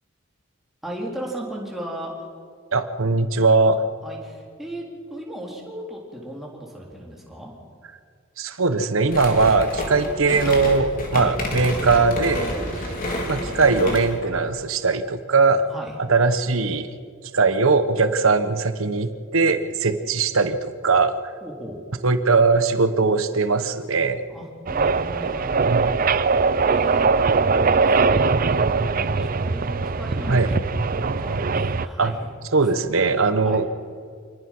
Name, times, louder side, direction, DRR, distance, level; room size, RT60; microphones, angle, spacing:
voice 1, 0.8-2.3 4.0-4.8 5.1-7.5 11.2-11.3 12.5-12.8 15.7-16.0 21.4-21.8 24.3-26.2 26.7-27.1 27.4-32.3 32.6-32.7 33.4-33.7, right 1 dB, ahead, -3 dB, 4.0 m, -36 dB
voice 2, 2.7-3.8 8.4-12.5 13.3-15.6 16.1-16.9 17.3-21.1 22.0-24.2 25.7-25.9 30.3-30.5 32.0-32.1 32.5-33.7, right 4 dB, 80° right, 11 dB, 1.2 m, -20 dB
sound 1, 9.1-14.3, left 1 dB, 45° left, 3.7 m, -29 dB
sound 2, 24.7-31.9, right 4 dB, 45° right, 0.6 m, -21 dB
26.5 x 19.5 x 6.2 m, 2.1 s
head